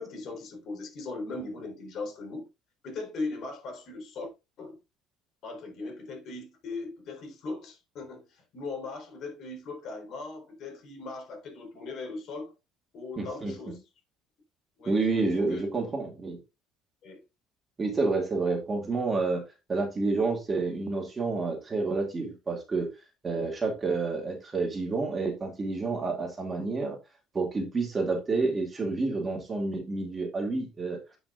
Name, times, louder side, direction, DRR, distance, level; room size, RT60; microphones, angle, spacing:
voice 1, 0.0-2.5 2.8-4.3 4.6-4.8 5.4-12.5 12.9-13.8 14.8-15.6 15.9-16.0 17.0-17.2 23.3-23.8, left 3 dB, 55° left, 3.9 m, -39 dB
voice 2, 13.2-13.5 14.9-16.4 17.8-19.4 19.7-22.9 23.2-27.0 27.3-31.0, right 3 dB, 25° right, 2.5 m, -29 dB
9.4 x 5.8 x 2.6 m
cardioid pair, 110°, 0 cm